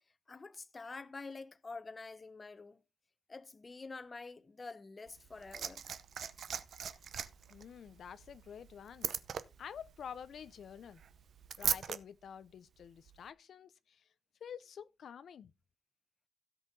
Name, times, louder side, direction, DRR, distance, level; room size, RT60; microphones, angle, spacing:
voice 1, 0.3-2.8 3.3-5.8, left 3 dB, 30° left, 0.8 m, -47 dB
Liquid, 5.1-12.0 13.1-13.2, right 7 dB, 70° right, 0.7 m, -40 dB
voice 2, 7.5-9.1 9.6-11.0 11.6-14.1 14.4-15.5, left 8 dB, 75° left, 0.5 m, -49 dB
16.0 x 5.5 x 4.0 m
wide cardioid pair, 125°, 0 cm